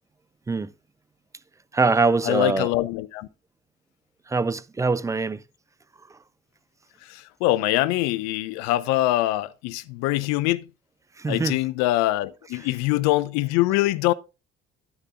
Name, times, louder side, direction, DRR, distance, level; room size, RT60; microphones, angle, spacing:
voice 1, 1.7-2.7 4.3-5.4 6.1-6.2 11.2-11.6, right 4 dB, 10° right, 0.4 m, -23 dB
voice 2, 2.2-3.3 7.0-10.7 11.3-14.1, left 17 dB, 55° left, 0.5 m, -23 dB
9.8 x 9.7 x 2.5 m
figure-of-eight pair, 50°, 33 cm